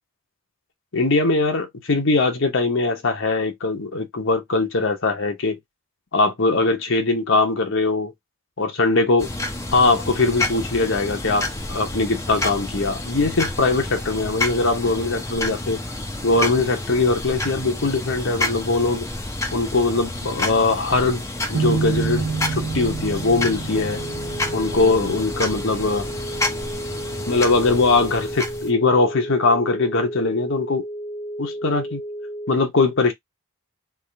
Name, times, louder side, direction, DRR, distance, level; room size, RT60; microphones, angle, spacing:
voice 1, 0.9-5.6 6.1-8.1 8.6-9.3 9.7-15.8 16.2-19.1 19.5-21.2 21.5-22.2 22.5-24.0 24.5-26.1 27.3-30.8 31.4-32.0 32.5-33.1, left 3 dB, 55° left, 1.0 m, -21 dB
sound 1, 9.2-28.7, left 2 dB, 15° left, 0.7 m, -29 dB
sound 2, 21.5-28.7, right 5 dB, 55° right, 1.1 m, -30 dB
sound 3, 23.7-32.6, right 1 dB, 35° left, 1.8 m, -33 dB
3.6 x 2.5 x 3.4 m
head